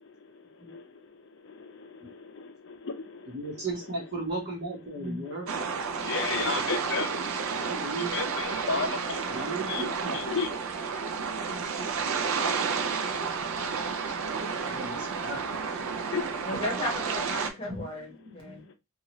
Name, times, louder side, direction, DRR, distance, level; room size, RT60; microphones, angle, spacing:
voice 1, 1.8-3.3 5.2-5.4 6.0-7.1 7.9-10.5 12.7-12.8 16.1-16.2, left 5 dB, 55° left, 0.5 m, -33 dB
voice 2, 3.3-5.5 7.5-8.1 9.3-10.4 14.6-15.8 17.6-17.8 18.4-18.7, right 2 dB, 45° right, 1.2 m, -36 dB
sound 1, 5.5-17.5, right 5 dB, 65° right, 0.4 m, -31 dB
voice 3, 16.4-18.6, left 1 dB, 25° left, 1.1 m, -35 dB
2.8 x 2.4 x 2.9 m
head